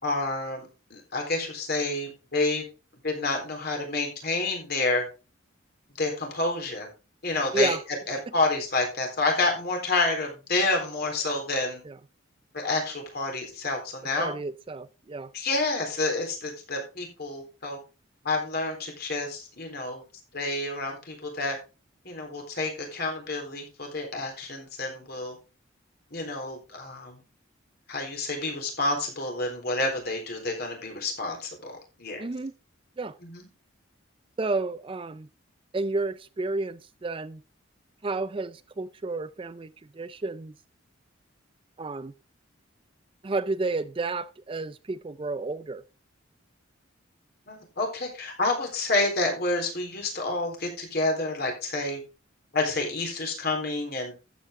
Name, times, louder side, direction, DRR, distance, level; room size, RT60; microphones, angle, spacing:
voice 1, 0.0-2.7 3.0-5.0 6.0-6.9 7.2-7.8 8.1-11.8 12.5-14.3 15.3-17.8 18.2-20.0 20.3-21.6 22.0-25.4 26.1-27.2 27.9-32.2 33.2-33.5 47.5-52.0 52.5-54.1, left 2 dB, 50° left, 3.8 m, -29 dB
voice 2, 14.2-15.3 32.2-32.5 33.0-33.2 34.4-35.3 35.7-37.4 38.0-40.5 41.8-42.1 43.2-45.8, right 3 dB, 25° right, 0.4 m, -31 dB
12.5 x 8.2 x 3.6 m
head